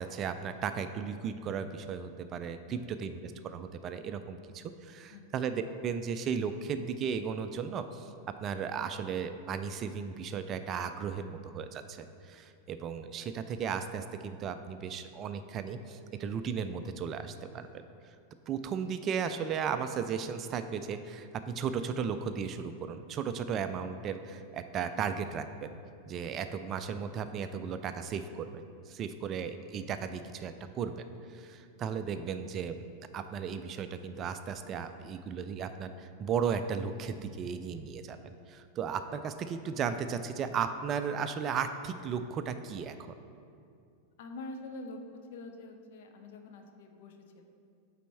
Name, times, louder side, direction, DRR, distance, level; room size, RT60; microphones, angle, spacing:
voice 1, 0.0-8.1 8.4-17.8 18.5-25.7 26.1-32.9 33.1-43.2, right 6 dB, 30° right, 10 dB, 0.3 m, -35 dB
voice 2, 44.2-45.0 45.3-47.4, left 2 dB, 55° left, 5 dB, 0.7 m, -45 dB
8.2 x 4.2 x 4.3 m, 2.4 s
figure-of-eight pair, 90°, 0 cm